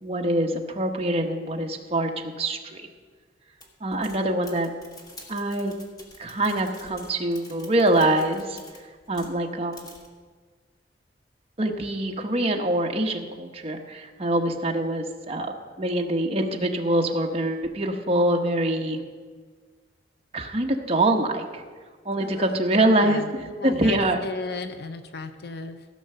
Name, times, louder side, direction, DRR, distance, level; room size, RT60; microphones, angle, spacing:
voice 1, 0.0-2.8 3.8-4.7 5.3-5.7 6.2-8.6 9.1-9.9 11.6-15.5 15.8-19.0 20.3-21.6 22.0-24.2, right 1 dB, 35° right, 2 dB, 1.0 m, -24 dB
sound 1, 3.6-9.4 9.7-10.1, left 2 dB, 20° left, 1.4 m, -48 dB
voice 2, 22.2-25.9, left 3 dB, 60° left, 9 dB, 0.6 m, -36 dB
15.5 x 5.9 x 6.6 m, 1.5 s
head